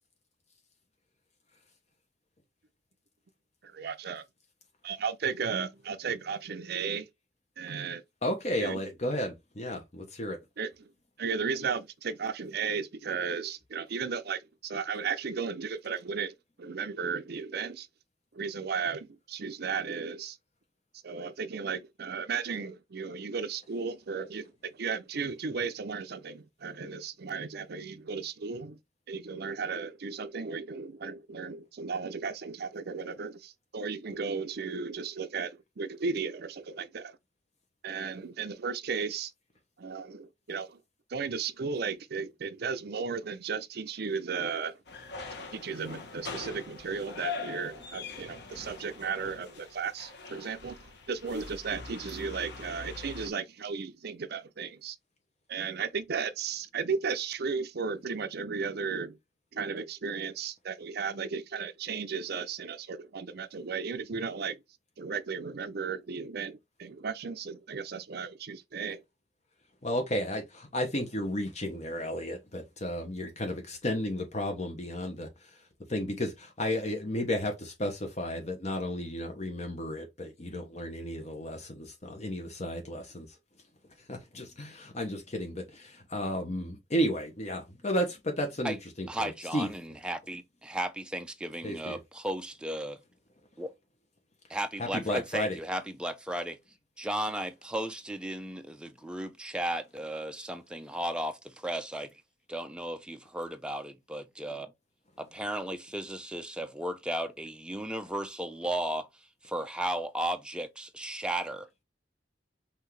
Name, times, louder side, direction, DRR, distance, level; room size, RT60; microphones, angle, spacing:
voice 1, 3.8-4.2 4.8-7.1 7.6-8.0 8.6-8.8 10.6-10.7 11.2-17.9 18.3-20.4 21.0-28.8 29.1-37.2 37.8-39.3 39.8-40.8 41.1-44.8 45.5-55.0 55.5-59.2 59.5-64.6 65.0-69.0, right 5 dB, 60° right, 0.6 m, -35 dB
voice 2, 8.2-10.4 69.8-83.4 84.0-89.7 91.6-92.0 94.8-95.6, equal, 35° left, 1.0 m, -33 dB
sound 1, 44.9-53.3, left 4 dB, 60° left, 1.2 m, -42 dB
voice 3, 89.1-93.0 93.6-93.7 94.5-96.6 97.0-102.1 102.5-104.7 105.2-109.1 109.4-111.7, right 1 dB, 5° right, 0.6 m, -35 dB
5.8 x 2.7 x 3.2 m
head